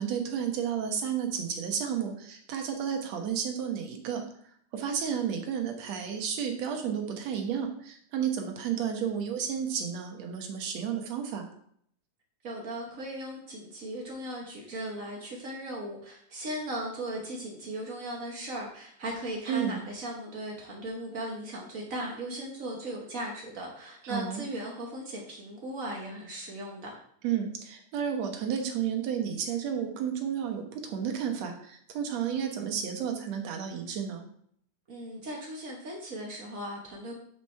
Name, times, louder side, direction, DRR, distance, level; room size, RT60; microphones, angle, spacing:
voice 1, 0.0-4.3 4.7-11.4 19.5-19.8 24.0-24.4 27.2-34.2, right 8 dB, 65° right, 4 dB, 2.2 m, -32 dB
voice 2, 12.4-27.0 34.9-37.1, right 1 dB, 85° right, -1 dB, 0.7 m, -37 dB
8.6 x 5.0 x 4.5 m, 0.64 s
omnidirectional pair, 3.5 m